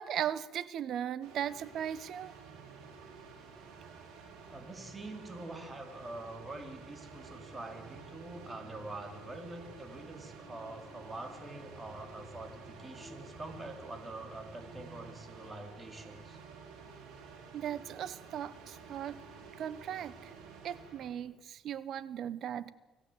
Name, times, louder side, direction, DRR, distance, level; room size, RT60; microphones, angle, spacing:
voice 1, 0.0-2.3 17.5-19.2 19.6-20.3 20.6-22.7, right 10 dB, 65° right, 18 dB, 1.0 m, -37 dB
sound 1, 1.2-21.1, right 5 dB, 85° right, 4.6 m, -51 dB
voice 2, 4.5-16.4, right 2 dB, 20° right, 5 dB, 3.5 m, -45 dB
sound 2, 8.0-13.8, left 4 dB, 20° left, 6.3 m, -58 dB
25.5 x 15.0 x 8.0 m, 1.2 s
cardioid pair, 90°, 0 cm